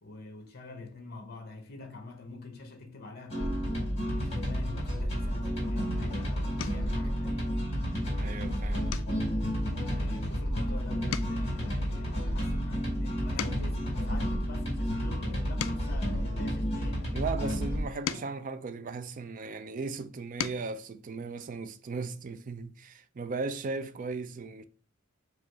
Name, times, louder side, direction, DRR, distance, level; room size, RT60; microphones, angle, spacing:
voice 1, 0.0-3.7 4.1-7.5 9.9-17.1 17.5-17.6 17.9-18.3, left 3 dB, 50° left, 0.8 m, -45 dB
sound 1, 3.3-17.8, equal, 30° left, 2.0 m, -31 dB
sound 2, 5.7-6.0 6.6-7.0 7.5-7.8 8.1-8.3 8.9-10.7 11.0-13.9 14.5-17.0 17.6-19.5 20.0-20.8 22.1-22.2 22.5-22.7, left 8 dB, 65° left, 0.3 m, -41 dB
voice 2, 7.9-8.9 17.1-24.6, right 4 dB, 40° right, 0.4 m, -37 dB
4.8 x 2.4 x 4.4 m
head